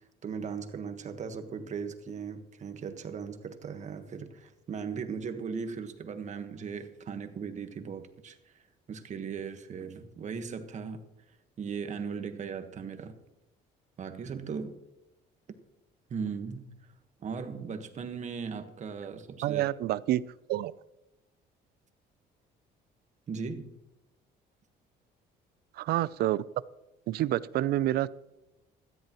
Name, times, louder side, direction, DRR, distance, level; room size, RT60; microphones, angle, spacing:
voice 1, 0.2-8.5 8.9-11.0 11.6-13.1 14.0-14.8 16.1-16.7 17.2-19.6 23.3-23.7, right 6 dB, 45° right, 1.4 m, -38 dB
voice 2, 19.4-20.2 20.5-20.7 25.7-26.4 27.1-28.1, right 14 dB, 70° right, 0.5 m, -28 dB
17.0 x 13.5 x 3.1 m
cardioid pair, 110°, 17 cm